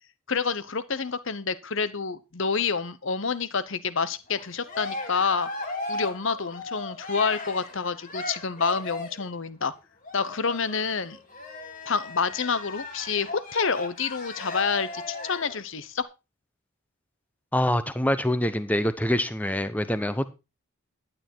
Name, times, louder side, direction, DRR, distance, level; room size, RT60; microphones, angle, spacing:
voice 1, 0.3-5.5 5.9-9.7 10.1-11.2 11.9-16.0, left 5 dB, 55° left, 14 dB, 0.9 m, -28 dB
Cheering, 4.3-9.3 10.0-15.6, left 2 dB, 35° left, 2.2 m, -37 dB
voice 2, 17.5-20.3, left 1 dB, 5° left, 12 dB, 0.8 m, -25 dB
12.0 x 9.0 x 4.5 m, 0.28 s
head